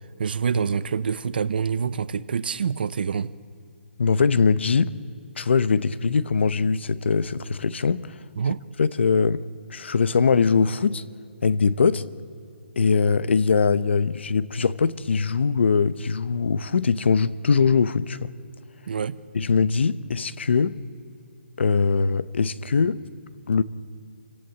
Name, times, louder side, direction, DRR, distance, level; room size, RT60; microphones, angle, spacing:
voice 1, 0.2-3.3 8.4-8.6 18.9-19.2, right 6 dB, 50° right, 0.7 m, -26 dB
voice 2, 4.0-4.9 5.4-8.1 8.8-9.4 9.7-11.0 11.4-12.0 12.8-18.3 19.3-20.8 21.6-23.0 23.5-23.6, left 5 dB, 65° left, 0.9 m, -21 dB
27.0 x 17.0 x 8.5 m
hypercardioid pair, 175°, 7 cm